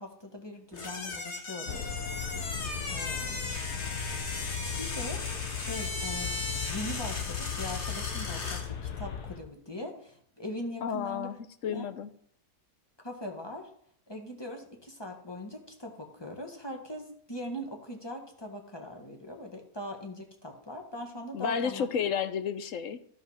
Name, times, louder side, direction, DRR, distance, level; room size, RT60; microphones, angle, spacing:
voice 1, 0.0-2.5 2.9-3.4 4.8-5.2 5.5-11.3 11.7-11.9 13.0-13.7 14.1-21.9, left 1 dB, 15° left, 3 dB, 1.5 m, -41 dB
sound 1, 0.7-8.7, left 3 dB, 45° left, 1.8 m, -37 dB
sound 2, 1.7-9.4, left 8 dB, 85° left, 1.7 m, -37 dB
voice 2, 10.8-11.4 11.6-12.1 21.3-23.0, left 7 dB, 60° left, 11 dB, 1.0 m, -31 dB
13.5 x 5.5 x 5.7 m, 0.65 s
omnidirectional pair, 1.6 m